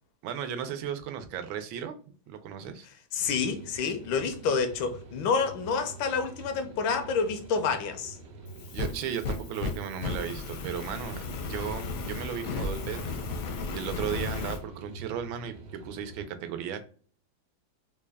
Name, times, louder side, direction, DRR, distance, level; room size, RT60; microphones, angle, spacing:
voice 1, 0.2-2.0 2.3-2.9 8.7-13.2 13.7-15.5 15.8-16.8, right 8 dB, 90° right, 1.4 m, -35 dB
voice 2, 3.1-8.2, left 5 dB, 90° left, 1.4 m, -28 dB
sound 1, 3.2-16.3, right 2 dB, 65° right, 0.8 m, -47 dB
Fire, 8.5-14.6, left 3 dB, 70° left, 0.8 m, -34 dB
3.9 x 2.2 x 3.3 m
omnidirectional pair, 2.1 m